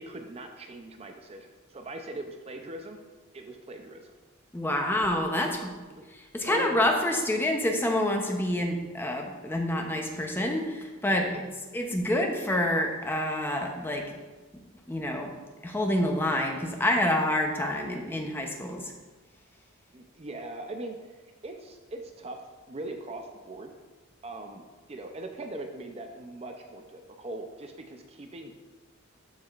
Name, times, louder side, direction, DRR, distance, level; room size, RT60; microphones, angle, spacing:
voice 1, 0.0-3.0 3.3-4.1 6.0-6.1 6.5-6.7 11.0-11.4 19.9-22.4 22.7-23.7 24.2-28.6, right 2 dB, 30° right, 4 dB, 0.5 m, -41 dB
voice 2, 4.5-5.7 6.3-11.5 11.7-14.1 14.9-15.3 15.6-18.9, left 1 dB, 10° left, 2 dB, 0.6 m, -27 dB
13.0 x 4.8 x 2.4 m, 1.3 s
head